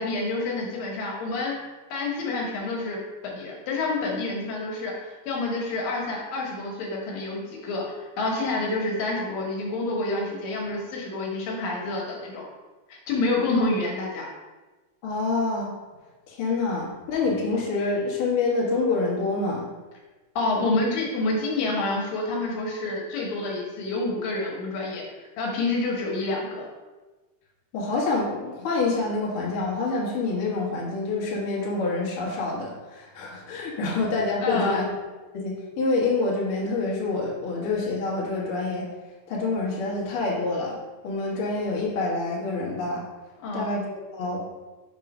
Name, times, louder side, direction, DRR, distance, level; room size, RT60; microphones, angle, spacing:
voice 1, 0.0-1.6 1.9-12.4 12.9-14.3 20.4-26.7 34.4-34.8 43.4-43.7, left 2 dB, 75° left, -2 dB, 2.6 m, -28 dB
voice 2, 15.0-15.7 16.3-19.7 27.7-34.9 35.3-38.9 39.3-40.8 41.0-43.0 43.5-43.8 44.1-44.4, left 3 dB, 55° left, -4 dB, 1.7 m, -27 dB
6.2 x 3.7 x 5.2 m, 1.2 s
omnidirectional pair, 4.2 m